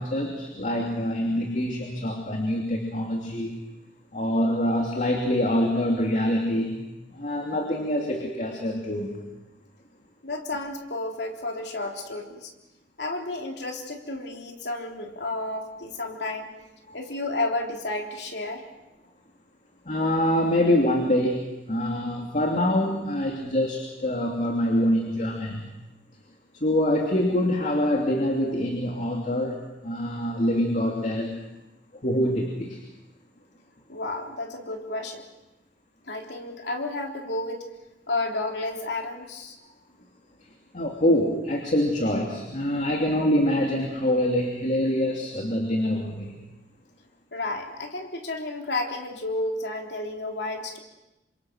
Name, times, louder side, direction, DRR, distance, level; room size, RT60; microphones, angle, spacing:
voice 1, 0.0-3.6 4.1-6.8 7.1-9.2 16.9-17.0 19.8-25.7 26.5-31.4 31.9-32.8 40.7-46.3, left 1 dB, 45° left, 1 dB, 2.9 m, -25 dB
voice 2, 10.2-12.5 13.0-16.5 16.9-18.6 33.9-35.2 36.1-37.7 38.1-39.6 47.3-50.8, left 2 dB, 70° left, 2 dB, 3.5 m, -31 dB
29.0 x 26.0 x 6.3 m, 0.96 s
head